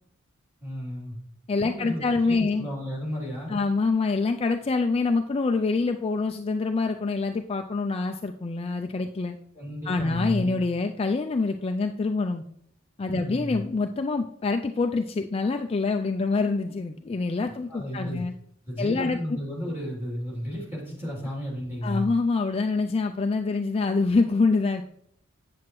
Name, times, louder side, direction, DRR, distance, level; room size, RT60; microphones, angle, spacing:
voice 1, 0.6-1.2 1.6-3.6 9.5-10.6 13.1-13.6 17.7-18.2 18.7-22.1, equal, 10° right, -4 dB, 3.1 m, -33 dB
voice 2, 1.5-2.7 3.5-9.4 9.9-12.4 13.0-18.3 18.8-19.2 21.8-24.8, left 3 dB, 30° left, 5 dB, 0.3 m, -26 dB
8.5 x 7.7 x 3.1 m, 0.68 s
head